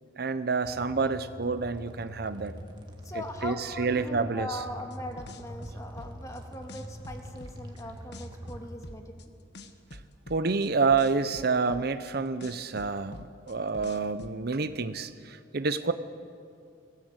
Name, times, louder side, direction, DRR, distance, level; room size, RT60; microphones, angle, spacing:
voice 1, 0.2-2.6 3.1-4.5 10.3-15.9, right 4 dB, 55° right, 12 dB, 0.7 m, -28 dB
sound 1, 0.7-8.7, equal, 25° right, 1.8 m, -44 dB
voice 2, 3.0-9.1, left 1 dB, 15° left, 4 dB, 1.9 m, -40 dB
sound 2, 4.9-6.4 6.7-7.8 8.1-9.2 9.5-12.1 12.4-14.3, left 1 dB, 60° left, 1.2 m, -46 dB
22.0 x 17.0 x 8.1 m, 2.4 s
head